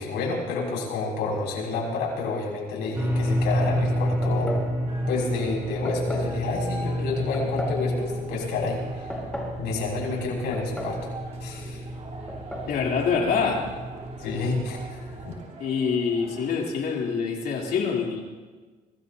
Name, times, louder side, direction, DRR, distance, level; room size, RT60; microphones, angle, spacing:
voice 1, 0.0-4.6 5.1-9.1 9.6-11.0 11.4-11.8 14.2-15.3, left 3 dB, 85° left, -3 dB, 6.3 m, -29 dB
sound 1, 2.9-15.3, equal, 15° right, 3.5 m, -30 dB
sound 2, 4.2-4.7 5.8-6.3 7.3-7.8 8.8-9.6 10.5-11.0 11.3-11.4 12.3-12.7, equal, 5° left, 5.3 m, -34 dB
sound 3, 4.9-16.5, right 3 dB, 40° right, 3.3 m, -44 dB
voice 2, 12.7-13.7 15.6-18.2, left 5 dB, 65° left, -1 dB, 3.2 m, -25 dB
25.0 x 18.5 x 2.8 m, 1.3 s
cardioid pair, 110°, 17 cm